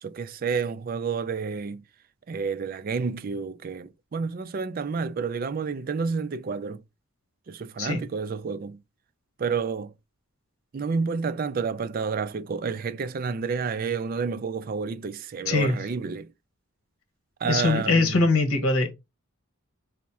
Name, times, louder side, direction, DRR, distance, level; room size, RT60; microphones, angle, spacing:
voice 1, 0.0-1.8 2.3-6.8 7.5-8.8 9.4-9.9 10.7-16.3 17.4-18.3, right 5 dB, 40° right, 0.3 m, -30 dB
voice 2, 15.5-15.8 17.5-18.9, left 3 dB, 70° left, 1.0 m, -22 dB
3.5 x 2.1 x 4.2 m
head